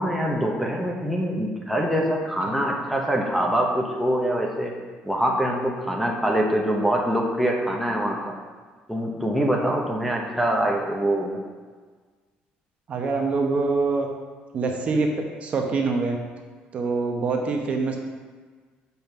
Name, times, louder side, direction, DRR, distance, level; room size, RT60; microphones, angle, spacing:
voice 1, 0.0-4.7 5.0-8.3 8.9-11.4, right 1 dB, ahead, -1 dB, 0.9 m, -24 dB
voice 2, 12.9-14.1 14.5-15.1 15.4-16.2 16.7-18.0, right 4 dB, 40° right, 2 dB, 1.0 m, -24 dB
6.0 x 5.5 x 6.0 m, 1.5 s
cardioid pair, 140°, 3 cm